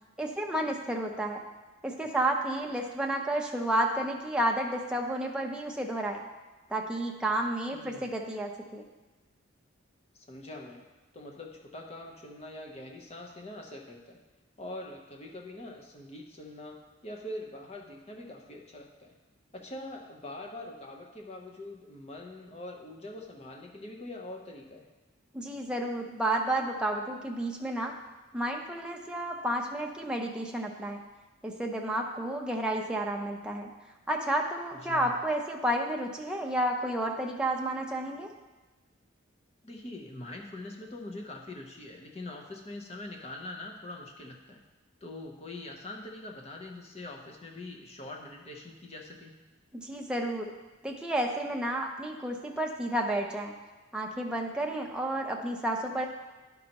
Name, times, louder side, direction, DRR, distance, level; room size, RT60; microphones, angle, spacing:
voice 1, 0.2-1.4 1.8-6.2 6.7-8.8 25.3-28.0 28.3-31.0 31.4-33.7 34.1-38.3 49.7-50.5 50.8-53.5 53.9-56.1, right 1 dB, 5° right, 0 dB, 0.6 m, -31 dB
voice 2, 7.7-8.1 10.1-10.8 11.1-14.2 14.6-19.1 19.5-24.9 34.8-35.1 39.6-44.6 45.0-49.3, left 1 dB, 30° left, 1 dB, 0.8 m, -43 dB
10.5 x 5.3 x 2.9 m, 1.2 s
head